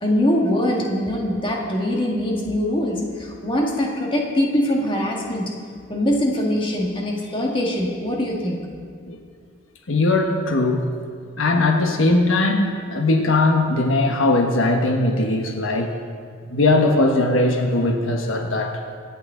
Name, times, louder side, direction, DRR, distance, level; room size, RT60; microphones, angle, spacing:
voice 1, 0.0-5.5 5.9-8.6, left 1 dB, 25° left, -1 dB, 1.7 m, -22 dB
voice 2, 9.9-10.9 11.4-15.9 16.5-19.0, left 2 dB, 80° left, 3 dB, 1.2 m, -19 dB
25.0 x 8.8 x 3.8 m, 2.1 s
head